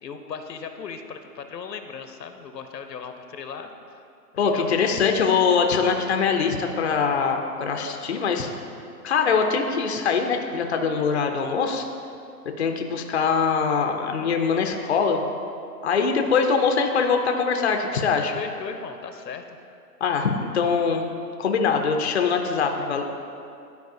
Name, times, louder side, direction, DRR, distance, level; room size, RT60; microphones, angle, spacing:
voice 1, 0.0-4.0 4.4-5.1 18.3-19.6, left 6 dB, 85° left, 7 dB, 0.8 m, -37 dB
voice 2, 4.4-8.5 9.0-11.8 12.6-15.2 15.8-18.3 20.0-21.1 21.4-23.3, left 5 dB, 45° left, 4 dB, 0.5 m, -23 dB
12.0 x 4.7 x 2.7 m, 2.5 s
hypercardioid pair, 160°, 48 cm